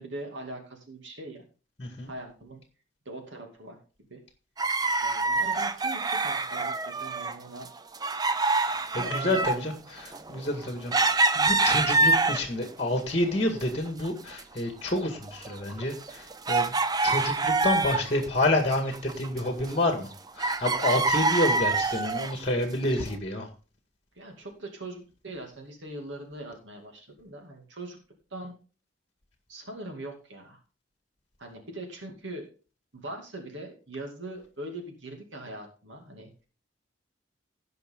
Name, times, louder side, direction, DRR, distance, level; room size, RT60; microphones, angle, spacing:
voice 1, 0.0-1.4 2.0-2.6 3.1-3.8 4.1-4.2 5.0-7.7 9.0-9.7 24.1-28.0 28.3-28.5 29.5-30.6 31.4-32.5 32.9-36.3, right 1 dB, 70° right, 2 dB, 2.4 m, -41 dB
voice 2, 1.8-2.1 8.7-16.8 17.0-20.1 20.4-23.5, left 1 dB, 30° left, 5 dB, 1.8 m, -29 dB
sound 1, 4.6-7.4 7.6-12.7 13.2-14.1 14.3-14.4 15.0-18.2 18.6-20.1 20.4-22.4 23.0-23.1, right 3 dB, 20° right, 0.5 m, -26 dB
17.0 x 5.7 x 3.7 m, 0.35 s
head